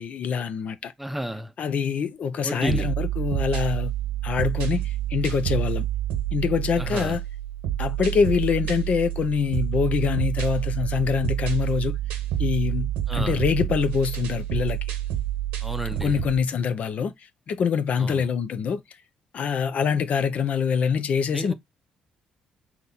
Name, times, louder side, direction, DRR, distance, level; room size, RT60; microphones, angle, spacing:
voice 1, 0.0-0.9 1.6-3.9 4.2-5.9 6.3-7.2 7.8-12.0 12.4-14.8 16.0-18.8 19.3-21.5, left 6 dB, 55° left, 0.6 m, -25 dB
voice 2, 1.0-1.5 2.4-2.9 6.8-7.2 13.1-13.4 15.6-16.2 18.0-18.3 21.3-21.5, equal, 5° right, 0.6 m, -32 dB
sound 1, 2.7-16.4, right 13 dB, 80° right, 0.9 m, -28 dB
4.0 x 2.9 x 3.8 m
hypercardioid pair, 55°, 3 cm